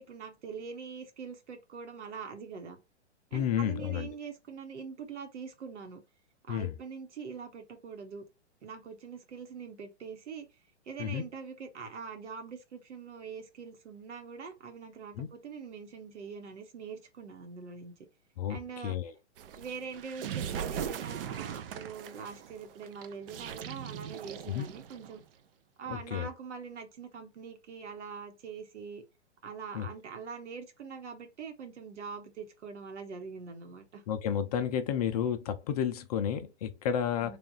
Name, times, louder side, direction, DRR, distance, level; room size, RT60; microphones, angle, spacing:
voice 1, 0.0-2.8 3.3-6.0 6.4-8.2 8.6-10.5 10.8-17.9 18.5-19.0 19.6-25.2 25.8-29.0 29.4-34.0 37.2-37.4, right 6 dB, 75° right, 1.4 m, -43 dB
voice 2, 3.3-4.1 6.5-6.7 11.0-11.2 15.2-15.3 18.4-18.6 18.8-19.1 24.5-24.7 25.9-26.3 29.7-29.9 34.1-37.4, left 9 dB, 35° left, 0.5 m, -31 dB
sound 1, 19.4-25.2, right 8 dB, 50° right, 0.6 m, -39 dB
3.4 x 2.4 x 3.9 m
hypercardioid pair, 140°, 35 cm